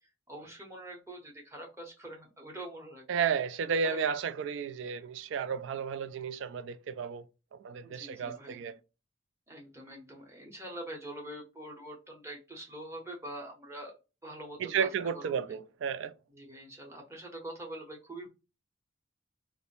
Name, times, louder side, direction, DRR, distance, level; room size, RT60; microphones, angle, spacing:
voice 1, 0.3-3.1 3.7-4.1 7.8-8.6 9.5-13.9 14.2-14.9 15.1-15.4 16.3-18.3, right 1 dB, 15° right, 0.8 m, -44 dB
voice 2, 3.1-7.2 7.5-8.8 14.6-16.1, right 6 dB, 75° right, 0.3 m, -33 dB
2.5 x 2.0 x 2.9 m
head